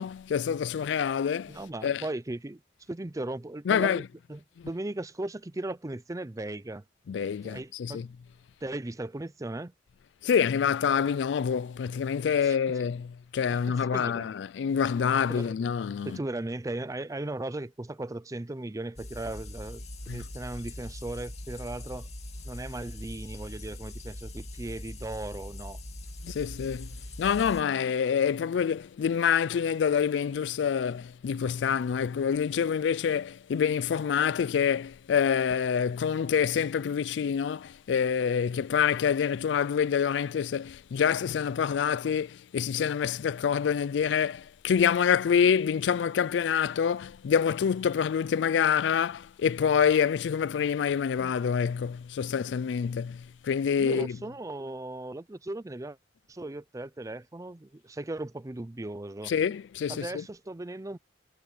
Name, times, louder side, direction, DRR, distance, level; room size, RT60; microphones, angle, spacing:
voice 1, 0.0-2.0 3.7-4.0 7.1-8.1 10.2-16.2 20.1-20.2 26.2-26.9 27.2-54.2 59.3-60.2, left 7 dB, 75° left, 0.3 m, -27 dB
voice 2, 1.5-2.6 2.9-4.0 4.3-6.8 7.4-8.0 8.6-9.7 12.4-12.6 13.5-14.3 15.3-15.6 16.0-22.1 22.4-25.8 53.8-56.0 56.3-59.3 59.9-61.0, right 2 dB, 20° right, 0.5 m, -37 dB
sound 1, 19.0-27.6, left 1 dB, 35° left, 2.7 m, -41 dB
head